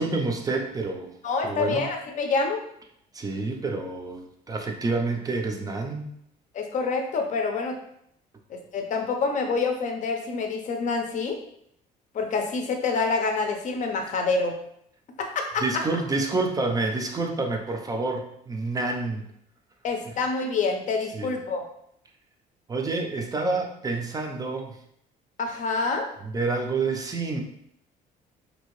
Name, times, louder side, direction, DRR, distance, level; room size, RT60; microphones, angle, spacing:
voice 1, 0.0-1.1 1.4-1.8 3.1-6.1 15.6-19.2 21.1-21.4 22.7-24.8 26.2-27.4, right 3 dB, 20° right, 3 dB, 0.4 m, -28 dB
voice 2, 1.2-2.6 6.5-7.8 8.5-11.4 12.1-14.5 15.2-15.6 19.8-21.7 25.4-26.1, left 4 dB, 45° left, 4 dB, 0.6 m, -27 dB
2.7 x 2.7 x 3.0 m, 0.72 s
cardioid pair, 110°, 17 cm